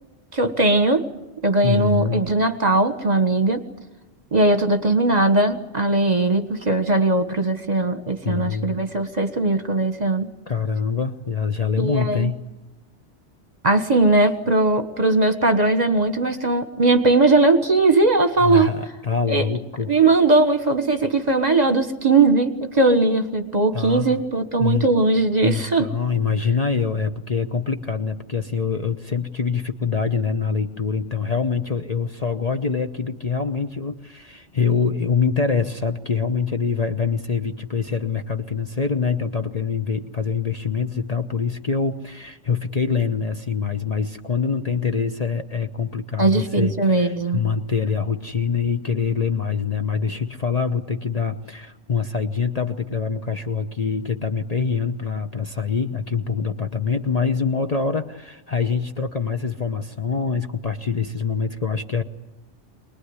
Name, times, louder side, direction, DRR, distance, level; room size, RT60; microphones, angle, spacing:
voice 1, 0.3-1.0 1.4-3.7 4.3-10.3 11.8-12.3 13.6-18.7 19.3-19.5 19.9-25.9 46.2-47.4, right 2 dB, 35° right, 9 dB, 1.5 m, -19 dB
voice 2, 1.6-2.2 8.2-8.8 10.5-12.4 18.4-19.9 23.7-24.2 24.6-24.9 25.4-62.0, left 5 dB, 35° left, 6 dB, 1.0 m, -25 dB
24.0 x 20.0 x 9.7 m, 1.0 s
omnidirectional pair, 1.2 m